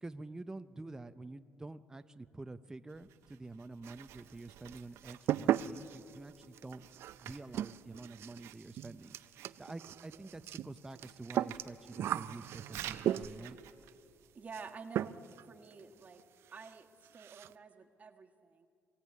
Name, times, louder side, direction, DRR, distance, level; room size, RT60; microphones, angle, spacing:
voice 1, 0.0-6.8 7.2-9.2 9.6-13.6, right 2 dB, 15° right, 10 dB, 0.6 m, -48 dB
Writing, 2.9-14.5, right 12 dB, 85° right, 0.9 m, -53 dB
sound 1, 3.8-4.4 4.7-13.6 14.5-14.7 14.9-15.4 15.7-15.8 16.2-16.3 16.6-16.7 17.0-17.5, right 11 dB, 65° right, 0.5 m, -37 dB
voice 2, 14.3-15.2 15.4-16.2 16.5-16.9 17.1-18.7, right 5 dB, 35° right, 4 dB, 1.5 m, -50 dB
22.0 x 16.0 x 9.5 m, 2.5 s
cardioid pair, 115°, 5 cm